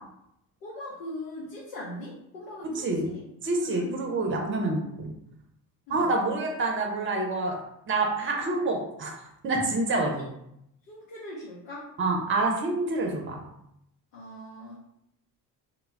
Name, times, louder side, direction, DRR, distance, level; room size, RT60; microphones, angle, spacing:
voice 1, 0.6-3.2 3.6-4.1 5.9-6.1 9.9-10.2 10.9-11.9 14.1-14.8, left 1 dB, 60° left, -6 dB, 0.8 m, -40 dB
voice 2, 2.8-3.1 3.4-5.1 5.9-7.6 7.9-9.1 9.4-10.1 12.0-13.4, right 2 dB, 25° right, 1 dB, 0.6 m, -27 dB
2.1 x 2.0 x 3.4 m, 0.78 s
figure-of-eight pair, 50°, 50 cm